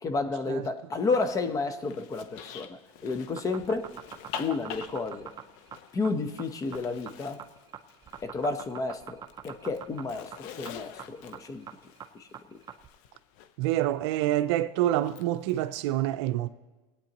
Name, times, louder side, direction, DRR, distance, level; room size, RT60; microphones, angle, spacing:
voice 1, 0.0-3.9 4.4-5.3 5.9-7.4 8.2-9.2 9.4-11.6 12.1-12.6, left 3 dB, 25° left, 0.9 m, -31 dB
Zipper (clothing), 1.0-8.8 9.1-13.5 14.9-15.8, left 9 dB, 60° left, 0.8 m, -47 dB
sound 1, 3.2-12.9, right 8 dB, 25° right, 0.7 m, -44 dB
voice 2, 13.6-16.5, right 13 dB, 70° right, 0.6 m, -27 dB
22.0 x 8.5 x 3.0 m
supercardioid pair, 130°, 15 cm